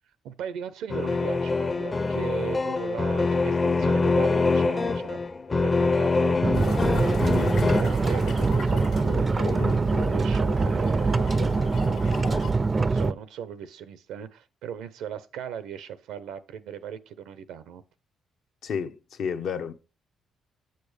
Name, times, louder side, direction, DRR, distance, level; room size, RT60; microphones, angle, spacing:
voice 1, 0.2-5.2 5.5-11.4 11.7-12.5 12.8-17.8, right 8 dB, 90° right, 0.7 m, -38 dB
sound 1, 0.9-7.8, left 3 dB, 30° left, 0.5 m, -24 dB
sound 2, 6.4-13.1, right 4 dB, 30° right, 0.4 m, -23 dB
sound 3, 6.5-12.5, left 6 dB, 90° left, 1.6 m, -38 dB
voice 2, 18.6-19.7, left 6 dB, 70° left, 0.8 m, -31 dB
8.0 x 6.8 x 3.3 m
cardioid pair, 90°, 0 cm